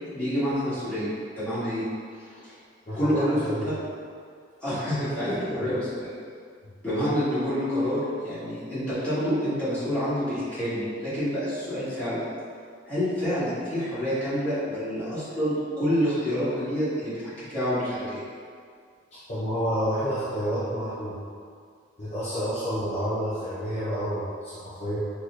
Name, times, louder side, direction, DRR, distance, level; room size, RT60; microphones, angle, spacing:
voice 1, 0.1-1.1 1.4-1.8 2.4-2.5 3.0-3.7 4.6-6.1 6.8-12.2 12.9-18.2, equal, 10° left, -15 dB, 1.4 m, -28 dB
voice 2, 2.9-3.7 5.3-5.7 19.1-21.2 22.0-25.0, equal, 35° left, -11 dB, 0.6 m, -29 dB
4.6 x 2.1 x 2.4 m, 2.2 s
head